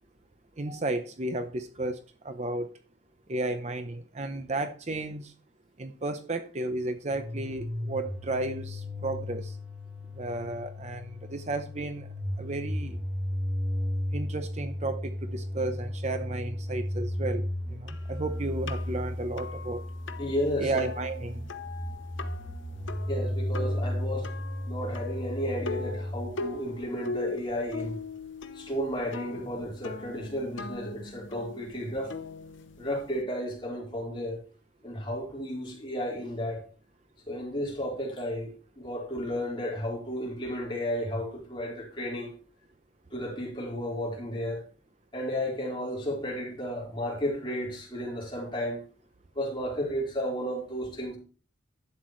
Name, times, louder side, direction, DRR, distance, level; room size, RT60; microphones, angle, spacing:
voice 1, 0.6-2.0 2.2-2.7 3.3-5.3 5.8-9.6 10.1-12.1 12.4-13.0 14.1-19.8 20.6-21.5, right 2 dB, 35° right, 0.6 m, -33 dB
sound 1, 7.1-26.3, left 1 dB, 10° right, 1.9 m, -34 dB
sound 2, 17.9-33.2, left 4 dB, 85° left, 0.8 m, -41 dB
voice 2, 20.2-20.7 23.1-24.3 24.7-28.0 28.5-32.1 32.8-34.4 34.8-36.7 37.3-42.3 43.1-44.6 45.1-48.8 49.3-51.2, equal, 25° left, 4.1 m, -33 dB
11.5 x 8.1 x 3.1 m
head